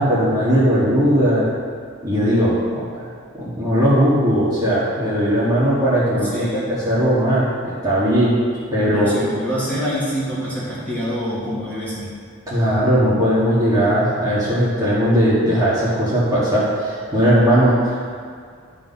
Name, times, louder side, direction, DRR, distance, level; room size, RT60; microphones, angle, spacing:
voice 1, 0.0-1.4 2.0-3.1 3.3-8.3 8.7-9.1 12.5-18.0, equal, 20° right, -11 dB, 2.0 m, -18 dB
voice 2, 6.2-6.7 8.9-12.1, equal, 10° left, -9 dB, 2.5 m, -26 dB
12.0 x 4.3 x 5.6 m, 2.1 s
head